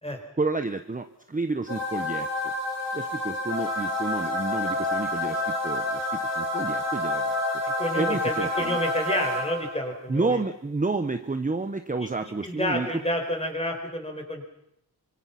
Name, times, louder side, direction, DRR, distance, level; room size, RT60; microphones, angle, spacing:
voice 1, 0.4-2.5 2.9-7.4 7.9-8.8 10.1-12.9, right 3 dB, 20° right, 8 dB, 1.0 m, -30 dB
sound 1, 1.7-9.9, left 1 dB, 35° left, 4.5 m, -29 dB
voice 2, 7.8-10.4 12.0-12.1 12.4-14.4, left 1 dB, 15° left, 3 dB, 4.9 m, -29 dB
26.0 x 25.0 x 5.9 m, 0.76 s
wide cardioid pair, 155°, 43 cm